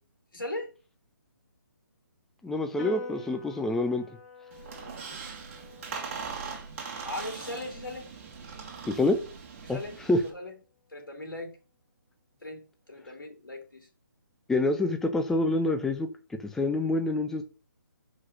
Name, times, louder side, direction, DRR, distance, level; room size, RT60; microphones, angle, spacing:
voice 1, 0.3-0.7 4.8-5.2 7.0-8.1 9.6-10.5 10.9-11.6 12.4-13.9, left 1 dB, 90° left, 2.9 m, -39 dB
voice 2, 2.4-4.0 8.9-9.2 9.7-9.8 10.1-10.2 14.5-16.1 16.5-17.4, left 2 dB, 5° left, 0.6 m, -26 dB
Piano, 2.8-9.5, left 5 dB, 35° left, 4.1 m, -48 dB
Squeak, 4.5-10.3, right 5 dB, 35° right, 1.7 m, -40 dB
5.7 x 5.1 x 5.8 m
hypercardioid pair, 155°, 11 cm